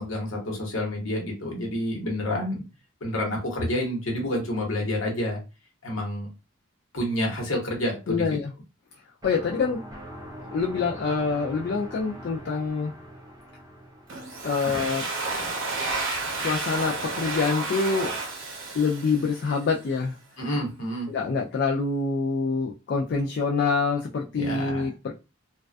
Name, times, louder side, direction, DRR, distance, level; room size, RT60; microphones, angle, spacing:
voice 1, 0.0-2.6 3.0-5.4 5.8-6.3 6.9-8.4 14.7-14.8 20.4-21.1 24.3-24.9, left 1 dB, 70° left, -1 dB, 1.0 m, -29 dB
voice 2, 8.1-8.5 9.2-9.8 10.5-12.9 14.4-15.0 16.4-18.1 18.7-20.1 21.1-25.1, left 4 dB, 55° left, 0 dB, 0.3 m, -26 dB
sound 1, 9.2-15.9, equal, 20° right, 0.5 m, -43 dB
Domestic sounds home sounds, 14.1-19.7, right 3 dB, 65° right, 0.7 m, -31 dB
2.4 x 2.3 x 2.2 m, 0.29 s
head